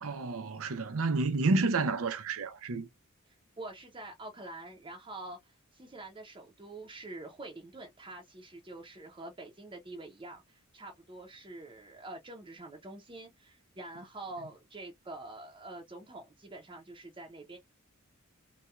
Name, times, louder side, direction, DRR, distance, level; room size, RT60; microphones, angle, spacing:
voice 1, 0.0-2.9, right 3 dB, 65° right, 0.6 m, -30 dB
voice 2, 3.3-17.6, right 2 dB, 25° right, 0.6 m, -46 dB
4.1 x 2.2 x 2.3 m
head